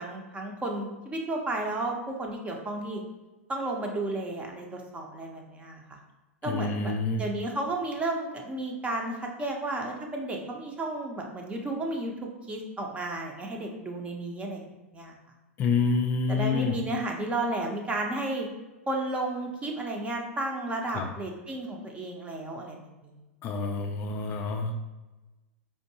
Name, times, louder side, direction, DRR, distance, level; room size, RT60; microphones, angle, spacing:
voice 1, 0.0-3.0 3.5-6.0 6.4-12.1 12.5-14.6 14.9-15.2 16.3-18.5 18.9-23.2, right 2 dB, 15° right, 1 dB, 0.6 m, -33 dB
voice 2, 6.5-7.2 15.6-16.8 20.9-21.1 23.4-24.9, left 4 dB, 30° left, 3 dB, 0.3 m, -27 dB
4.5 x 2.5 x 2.7 m, 1.1 s
hypercardioid pair, 105°, 7 cm